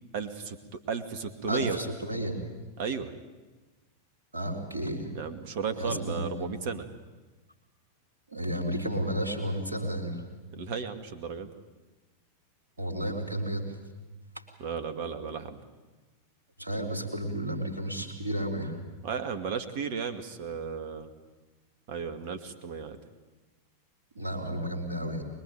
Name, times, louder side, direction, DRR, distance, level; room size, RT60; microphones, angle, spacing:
voice 1, 0.1-1.8 2.8-3.1 5.1-6.9 10.5-11.5 14.6-15.6 19.0-21.1 21.9-23.0, right 6 dB, 50° right, 9 dB, 2.2 m, -34 dB
voice 2, 1.5-2.4 4.3-5.1 5.8-6.5 8.3-10.2 12.8-13.7 16.6-18.7 24.2-25.2, right 1 dB, 75° right, 1 dB, 4.0 m, -32 dB
24.0 x 22.0 x 9.4 m, 1.2 s
figure-of-eight pair, 90°, 0 cm